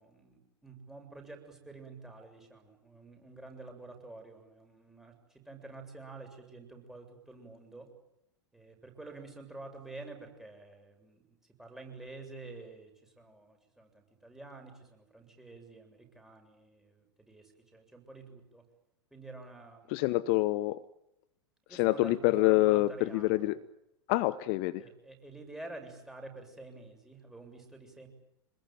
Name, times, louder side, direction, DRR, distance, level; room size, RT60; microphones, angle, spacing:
voice 1, 0.0-7.9 8.5-18.6 19.1-20.1 21.7-23.5 24.8-28.1, right 2 dB, 5° right, 3 dB, 7.4 m, -49 dB
voice 2, 19.9-20.8 21.7-23.6 24.1-24.8, left 18 dB, 45° left, 16 dB, 1.0 m, -26 dB
27.0 x 21.0 x 9.3 m, 0.83 s
figure-of-eight pair, 90°, 15 cm